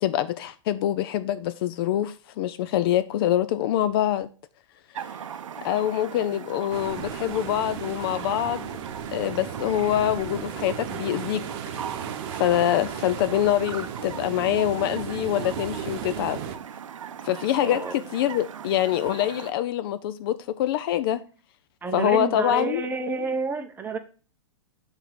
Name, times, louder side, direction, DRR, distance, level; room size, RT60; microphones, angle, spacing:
voice 1, 0.0-4.3 5.6-8.7 9.1-11.8 12.3-16.4 17.2-21.2 21.9-22.9, left 11 dB, 50° left, 0.4 m, -25 dB
sound 1, 4.9-19.5, right 8 dB, 80° right, 0.5 m, -39 dB
sound 2, 6.7-16.6, right 8 dB, 50° right, 0.9 m, -35 dB
voice 2, 17.6-17.9 21.8-24.0, right 4 dB, 10° right, 0.7 m, -29 dB
6.3 x 3.5 x 5.8 m
hypercardioid pair, 120°, 16 cm